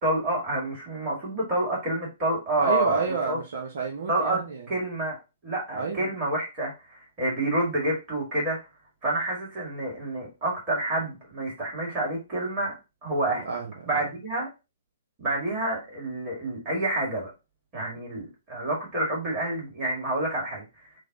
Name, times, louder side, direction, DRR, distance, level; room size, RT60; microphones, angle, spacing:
voice 1, 0.0-3.4 4.1-4.4 4.7-5.2 5.4-8.6 9.0-12.7 13.0-13.4 13.9-14.5 15.2-17.3 17.7-20.6, right 1 dB, 30° right, -3 dB, 1.9 m, -28 dB
voice 2, 2.6-4.7 5.7-6.1 13.3-14.0, right 5 dB, 60° right, 1 dB, 0.6 m, -30 dB
3.2 x 2.1 x 3.7 m, 0.27 s
figure-of-eight pair, 120°, 0 cm